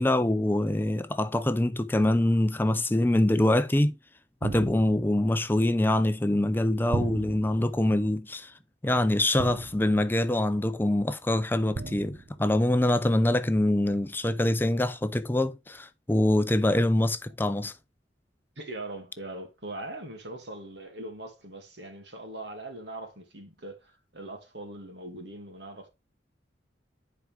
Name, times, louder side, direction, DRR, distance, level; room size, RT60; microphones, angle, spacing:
voice 1, 0.0-4.0 4.4-8.5 8.8-17.7, left 1 dB, 10° left, 0.5 m, -24 dB
sound 1, 4.4-5.2 6.9-7.7 9.4-10.1 11.7-12.4, right 3 dB, 45° right, 0.4 m, -35 dB
voice 2, 18.6-25.9, right 2 dB, 70° right, 2.4 m, -41 dB
10.0 x 5.0 x 3.4 m
head